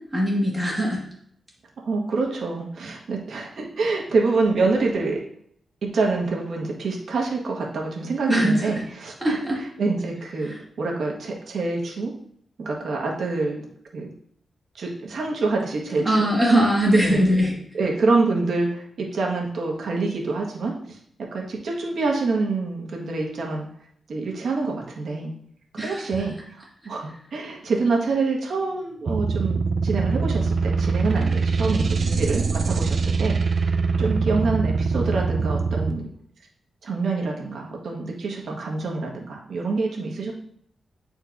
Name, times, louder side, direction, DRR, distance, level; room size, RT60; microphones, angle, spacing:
voice 1, 0.1-1.0 8.3-8.8 9.2-9.6 10.4-10.6 16.0-17.5 25.8-26.0, equal, 10° right, -4 dB, 1.7 m, -21 dB
voice 2, 1.8-5.2 5.8-9.4 9.8-12.1 12.6-13.6 13.9-14.1 14.7-16.3 17.0-17.2 17.8-21.0 21.3-23.7 24.1-25.3 25.8-33.4 34.0-36.0 36.8-40.3, right 3 dB, 65° right, -1 dB, 1.4 m, -26 dB
sound 1, 29.1-35.9, right 4 dB, 50° right, 0.5 m, -23 dB
9.4 x 4.3 x 2.6 m, 0.66 s
wide cardioid pair, 140°, 0 cm